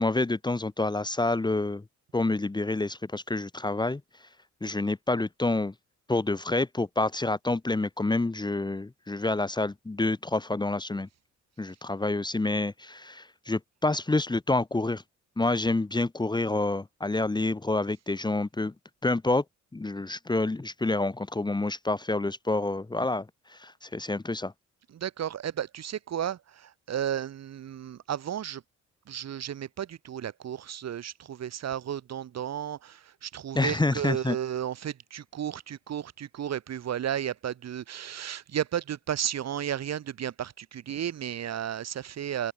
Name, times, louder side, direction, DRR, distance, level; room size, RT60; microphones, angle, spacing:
voice 1, 0.0-1.8 2.1-4.0 4.6-5.7 6.1-11.1 11.6-15.0 15.4-18.7 19.0-19.4 19.7-24.5 33.5-34.4, left 2 dB, 15° left, 1.2 m, -28 dB
voice 2, 24.9-28.6 29.1-42.5, right 10 dB, 60° right, 2.1 m, -33 dB
open air
cardioid pair, 90°, 30 cm